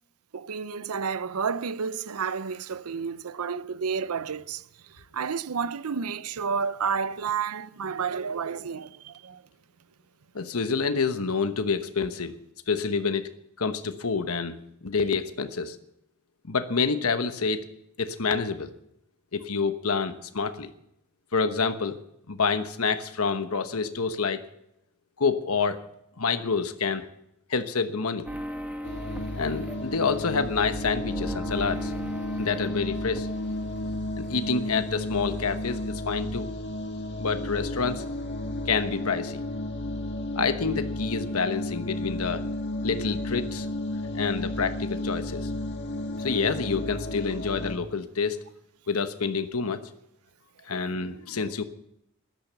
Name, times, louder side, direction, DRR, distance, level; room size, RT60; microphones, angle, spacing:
voice 1, 0.3-9.4, right 6 dB, 80° right, 0.6 m, -31 dB
voice 2, 10.3-12.3 12.7-13.3 13.6-15.8 16.4-17.6 18.0-18.7 19.3-20.7 21.3-22.0 22.3-24.4 25.2-25.8 26.2-27.1 27.5-28.3 29.4-31.9 32.4-33.3 34.2-36.5 37.2-38.0 38.7-39.4 40.4-42.4 42.8-43.7 44.1-45.5 46.2-48.4 48.9-49.8 50.7-51.6, left 5 dB, 70° left, 1.1 m, -27 dB
sound 1, 28.3-34.0 34.2-35.4, equal, 5° right, 1.6 m, -38 dB
sound 2, 28.8-47.8, left 1 dB, 55° left, 1.9 m, -33 dB
13.5 x 12.5 x 6.9 m
head